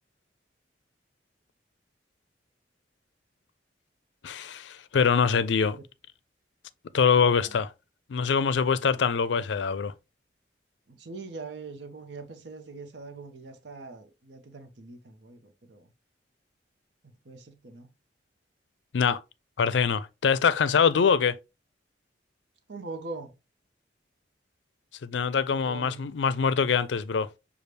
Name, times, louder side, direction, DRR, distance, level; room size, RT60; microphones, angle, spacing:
voice 1, 4.2-5.8 6.9-7.7 8.1-9.9 18.9-19.2 19.6-21.4 25.0-27.3, left 6 dB, 85° left, 0.4 m, -24 dB
voice 2, 10.9-15.9 17.3-17.9 22.7-23.3 25.5-26.0, right 3 dB, 80° right, 0.8 m, -42 dB
6.6 x 2.4 x 3.2 m
head